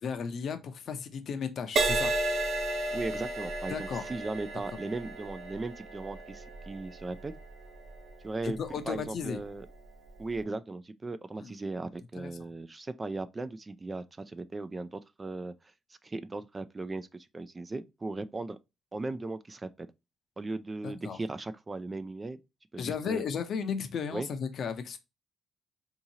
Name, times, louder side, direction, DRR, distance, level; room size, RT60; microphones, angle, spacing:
voice 1, 0.0-2.1 3.7-4.0 4.7-4.8 8.4-9.4 11.4-11.5 12.2-12.3 20.8-21.2 22.8-25.0, left 6 dB, 60° left, 0.6 m, -34 dB
Crash cymbal, 1.8-9.4 10.1-10.4, right 2 dB, 60° right, 0.8 m, -34 dB
voice 2, 2.9-7.3 8.2-9.7 10.2-15.5 16.0-18.6 18.9-19.9 20.4-22.4 22.7-23.2 24.1-24.3, right 3 dB, 25° right, 0.3 m, -37 dB
3.7 x 2.8 x 2.7 m
cardioid pair, 90°, 0 cm